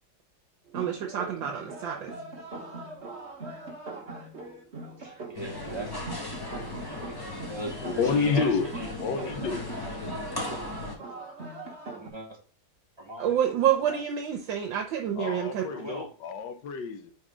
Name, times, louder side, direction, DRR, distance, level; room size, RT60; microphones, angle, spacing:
sound 1, 0.7-12.1, right 3 dB, 40° right, 1.3 m, -41 dB
voice 1, 0.7-2.1 13.2-15.6, right 9 dB, 75° right, 1.5 m, -28 dB
voice 2, 4.8-6.0 7.1-7.2 7.5-8.9 9.2-9.6 11.9-12.4 13.0-13.3 13.9-14.0 15.6-16.1, right 2 dB, 20° right, 0.8 m, -39 dB
sound 2, 5.3-11.0, left 2 dB, 15° left, 0.8 m, -37 dB
voice 3, 7.8-8.7 9.0-9.7 15.2-17.1, left 5 dB, 70° left, 1.3 m, -29 dB
4.9 x 4.2 x 4.9 m
omnidirectional pair, 2.1 m